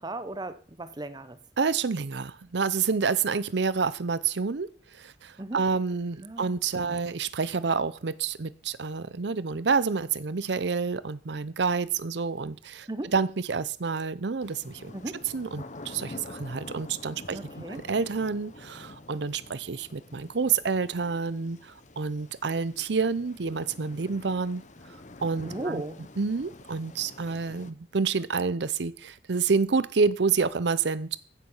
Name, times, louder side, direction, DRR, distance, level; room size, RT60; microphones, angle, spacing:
voice 1, 0.0-1.4 5.4-5.6 6.2-6.5 6.8-6.9 12.9-13.1 14.9-15.2 17.3-17.8 25.5-26.0, right 2 dB, 25° right, 13 dB, 0.8 m, -36 dB
voice 2, 1.6-4.7 5.0-14.9 15.3-24.6 25.2-25.8 26.2-31.2, right 5 dB, 65° right, 17 dB, 0.6 m, -28 dB
sound 1, 14.4-27.7, left 2 dB, 40° left, 0.9 m, -47 dB
15.5 x 7.4 x 5.6 m, 0.44 s
head